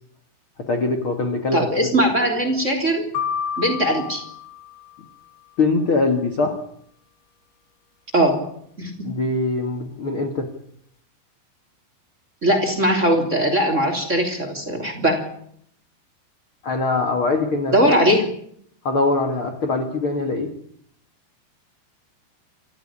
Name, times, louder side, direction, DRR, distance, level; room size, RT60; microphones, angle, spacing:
voice 1, 0.6-1.9 5.6-6.6 9.0-10.5 16.6-17.7 18.8-20.5, left 3 dB, 40° left, 6 dB, 2.0 m, -22 dB
voice 2, 1.5-3.1 3.6-4.2 8.1-8.4 8.8-9.1 12.4-15.3 17.7-18.3, equal, 20° right, 5 dB, 3.1 m, -20 dB
sound 1, 3.1-5.3, left 7 dB, 80° left, 4.5 m, -30 dB
28.0 x 14.5 x 9.9 m, 0.68 s
omnidirectional pair, 5.1 m